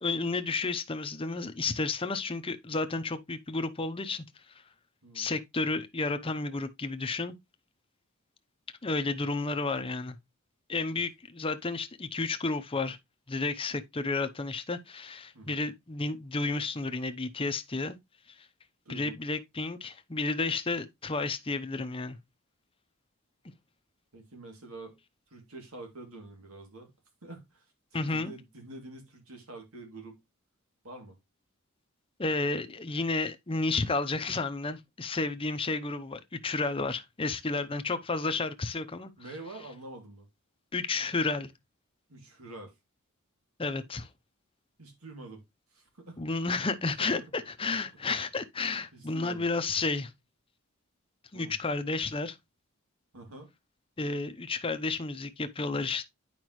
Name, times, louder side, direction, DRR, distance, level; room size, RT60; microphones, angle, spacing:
voice 1, 0.0-4.2 5.1-7.3 8.8-10.2 10.7-13.0 13.3-18.0 18.9-22.2 27.9-28.3 32.2-39.1 40.7-41.5 43.6-44.1 46.2-50.1 51.3-52.4 54.0-56.1, left 3 dB, 25° left, 0.7 m, -31 dB
voice 2, 5.0-5.3 10.9-11.0 15.3-15.6 18.8-19.2 24.1-25.0 25.3-26.9 27.2-27.6 27.9-30.2 30.8-31.2 39.2-40.3 42.1-42.7 44.8-45.4 45.7-46.2 47.1-47.2 48.9-49.5 51.3-51.5 53.1-53.5, right 2 dB, 80° right, 2.8 m, -46 dB
9.0 x 5.1 x 3.1 m
head